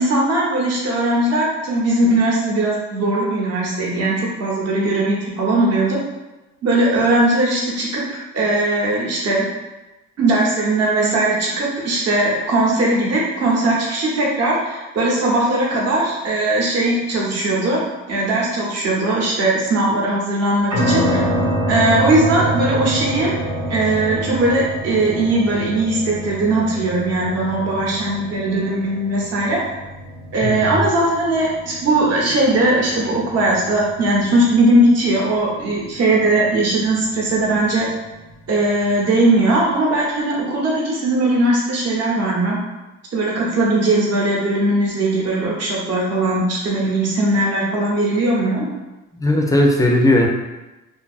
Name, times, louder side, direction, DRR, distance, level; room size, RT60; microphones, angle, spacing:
voice 1, 0.0-6.0 6.6-9.4 10.2-17.8 18.1-21.3 21.7-23.4 23.7-29.6 30.3-37.9 38.5-42.6 43.1-48.6, right 2 dB, 55° right, -3 dB, 0.8 m, -19 dB
sound 1, 20.7-39.0, right 1 dB, 80° right, 1.0 m, -27 dB
voice 2, 30.4-30.8 49.1-50.3, left 1 dB, 10° left, 1 dB, 0.3 m, -16 dB
2.5 x 2.3 x 2.3 m, 1.1 s
cardioid pair, 90°, 30 cm